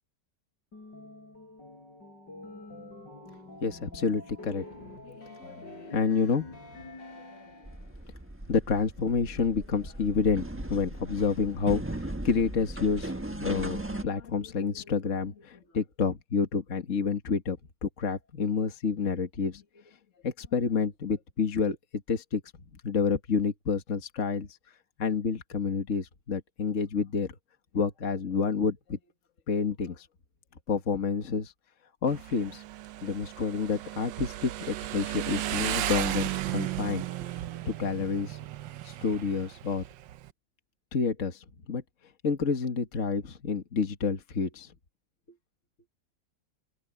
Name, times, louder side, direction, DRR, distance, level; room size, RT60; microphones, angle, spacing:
sound 1, 0.7-8.0, left 2 dB, 75° left, 5.6 m, -46 dB
voice 1, 3.6-4.6 5.0-6.5 8.5-19.6 20.2-21.8 22.1-22.4 22.8-24.5 25.0-27.3 27.7-29.0 29.5-30.1 30.7-31.5 32.0-32.6 33.0-37.4 37.7-38.4 38.8-39.8 40.9-41.8 42.2-44.7, left 5 dB, 45° left, 1.9 m, -29 dB
sound 2, 7.6-14.0, right 1 dB, 10° right, 1.1 m, -38 dB
Motorcycle, 32.1-40.3, right 13 dB, 85° right, 1.5 m, -35 dB
open air
omnidirectional pair, 2.0 m